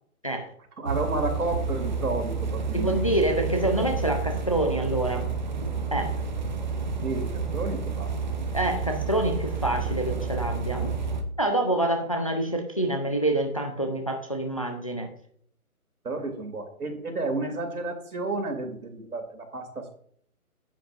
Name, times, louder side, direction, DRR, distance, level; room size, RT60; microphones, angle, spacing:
voice 1, 0.8-3.2 7.0-8.1 16.0-20.0, right 3 dB, 80° right, 4 dB, 2.7 m, -31 dB
sound 1, 0.9-11.2, right 4 dB, 30° right, 0.8 m, -30 dB
voice 2, 2.7-5.3 5.6-6.2 8.5-10.9 11.4-15.1, right 1 dB, 25° left, 5 dB, 0.5 m, -27 dB
10.0 x 7.5 x 2.5 m, 0.63 s
hypercardioid pair, 160°, 44 cm